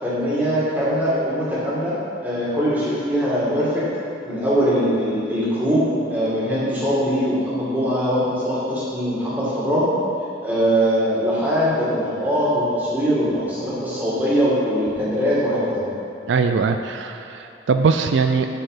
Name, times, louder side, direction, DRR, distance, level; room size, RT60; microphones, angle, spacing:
voice 1, 0.0-1.9 2.2-3.8 4.2-9.9 10.4-15.9, equal, 10° right, -9 dB, 2.1 m, -21 dB
voice 2, 16.3-18.5, right 5 dB, 75° right, 7 dB, 0.4 m, -21 dB
7.9 x 6.7 x 4.9 m, 2.6 s
head